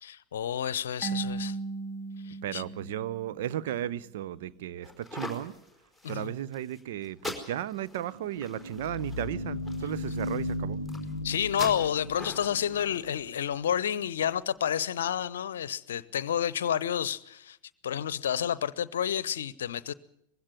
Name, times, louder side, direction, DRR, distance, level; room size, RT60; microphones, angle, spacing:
voice 1, 0.0-1.6 2.2-2.6 6.0-6.3 11.2-17.6 17.8-19.9, left 9 dB, 60° left, 0.8 m, -30 dB
Marimba xylophone / Wood, 1.0-3.8, right 4 dB, 30° right, 1.7 m, -37 dB
voice 2, 2.4-5.6 6.1-10.8, right 11 dB, 55° right, 0.7 m, -35 dB
sound 1, 4.8-14.4, left 1 dB, 10° right, 4.5 m, -44 dB
sound 2, 8.1-13.6, left 1 dB, 90° right, 2.6 m, -36 dB
21.0 x 16.5 x 9.6 m
figure-of-eight pair, 90°, 0 cm